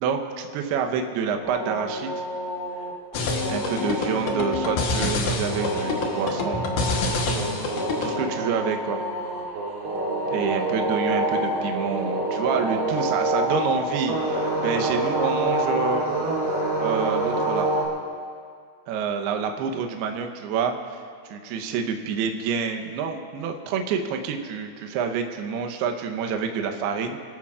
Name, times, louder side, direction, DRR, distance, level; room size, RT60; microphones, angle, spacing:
voice 1, 0.0-2.1 3.5-6.8 8.0-9.0 10.3-16.1 16.8-17.7 18.9-21.0 21.3-27.2, right 6 dB, 75° right, 5 dB, 2.6 m, -28 dB
sound 1, 1.4-17.9, right 1 dB, 45° right, 2.6 m, -27 dB
sound 2, 3.1-8.2, left 3 dB, 80° left, 1.8 m, -27 dB
25.5 x 14.0 x 2.5 m, 2.1 s
omnidirectional pair, 5.4 m